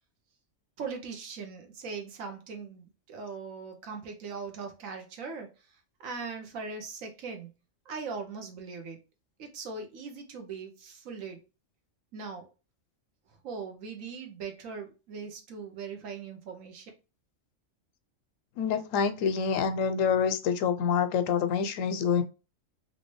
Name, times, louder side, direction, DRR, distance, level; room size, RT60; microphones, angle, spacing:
voice 1, 0.8-7.5 7.9-9.0 9.4-11.4 12.1-12.5 13.4-16.9, right 5 dB, 85° right, 1.2 m, -40 dB
voice 2, 18.6-22.2, left 6 dB, 80° left, 1.0 m, -26 dB
3.2 x 2.7 x 3.0 m
omnidirectional pair, 1.3 m